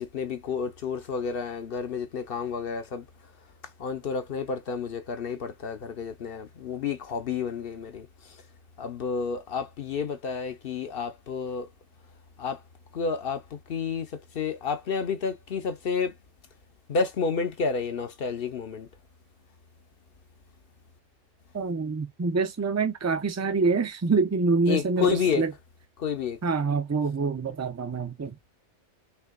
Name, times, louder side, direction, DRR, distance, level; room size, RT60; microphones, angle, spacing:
voice 1, 0.0-3.0 3.8-8.1 8.8-11.7 12.4-12.6 12.9-14.1 14.3-16.1 16.9-18.9 24.7-25.4 26.0-26.4, left 5 dB, 55° left, 0.8 m, -30 dB
voice 2, 21.5-25.5 26.4-28.4, right 4 dB, 20° right, 0.4 m, -26 dB
5.6 x 3.3 x 2.2 m
omnidirectional pair, 1.2 m